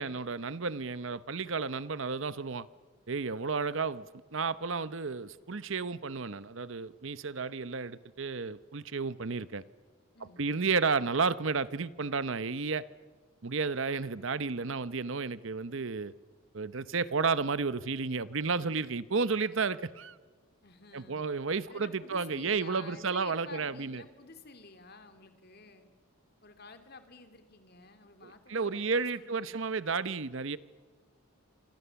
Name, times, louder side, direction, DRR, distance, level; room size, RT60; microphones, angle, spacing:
voice 1, 0.0-2.7 3.1-4.1 4.3-9.6 10.4-12.9 13.4-16.1 16.5-20.2 20.9-24.0 28.2-30.6, right 4 dB, 65° right, 0.8 m, -32 dB
voice 2, 10.1-10.6 20.6-21.3 21.7-25.9 26.4-29.6, left 3 dB, 45° left, 2.7 m, -52 dB
28.0 x 26.0 x 7.0 m
head